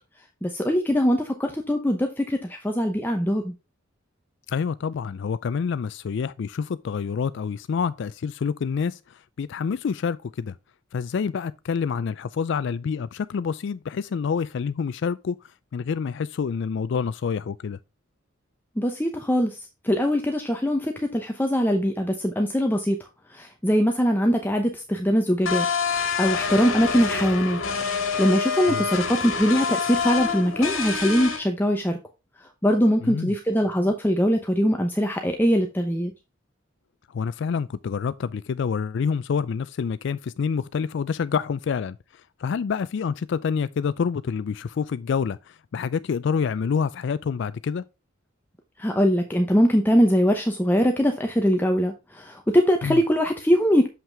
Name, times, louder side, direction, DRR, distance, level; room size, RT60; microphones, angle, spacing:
voice 1, 0.4-3.5 18.8-19.6 19.8-23.0 23.3-27.6 28.2-32.0 32.6-36.1 48.8-53.9, equal, 10° left, 0.8 m, -22 dB
voice 2, 4.5-10.5 10.9-15.4 15.7-17.8 28.7-28.8 33.0-33.3 37.1-47.8 52.8-53.0, left 6 dB, 60° left, 0.3 m, -27 dB
sound 1, 25.5-31.4, left 5 dB, 85° left, 1.6 m, -26 dB
7.4 x 5.7 x 3.4 m
head